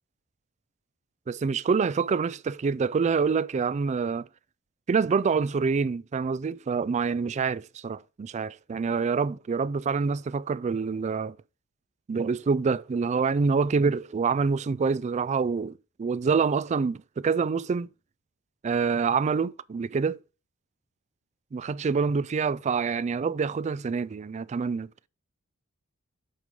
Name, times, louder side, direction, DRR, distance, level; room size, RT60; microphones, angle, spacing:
voice 1, 1.3-4.3 4.9-11.4 12.1-17.9 18.6-20.2 21.5-24.9, right 5 dB, 35° right, 0.3 m, -26 dB
7.8 x 5.3 x 4.7 m
head